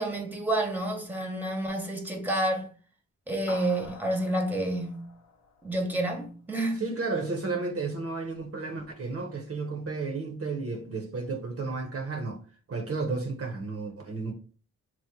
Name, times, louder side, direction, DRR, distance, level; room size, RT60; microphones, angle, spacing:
voice 1, 0.0-2.7 3.3-5.1 5.6-6.8, right 1 dB, 5° right, 0.8 m, -29 dB
sound 1, 3.5-6.2, left 4 dB, 65° left, 0.6 m, -46 dB
voice 2, 6.7-12.4 12.7-14.3, right 3 dB, 50° right, 0.6 m, -32 dB
2.9 x 2.0 x 3.5 m
cardioid pair, 50°, 29 cm